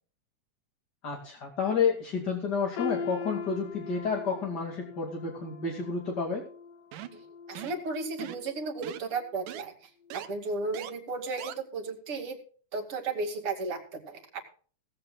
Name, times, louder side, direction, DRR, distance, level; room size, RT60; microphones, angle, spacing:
voice 1, 1.0-6.4, left 5 dB, 35° left, 1 dB, 2.6 m, -30 dB
sound 1, 2.8-8.7 9.1-9.3 10.1-10.2, left 5 dB, 80° left, 2.6 m, -41 dB
sound 2, 6.9-7.2 7.6-7.8 8.2-8.5 8.8-9.0 9.5-9.6 10.1-10.3 10.7-10.9 11.4-11.5, right 12 dB, 85° right, 2.6 m, -40 dB
voice 2, 7.5-9.7 10.1-12.4 12.7-14.4, right 3 dB, 45° right, 5 dB, 3.0 m, -34 dB
17.5 x 15.5 x 2.3 m, 0.42 s
omnidirectional pair, 3.7 m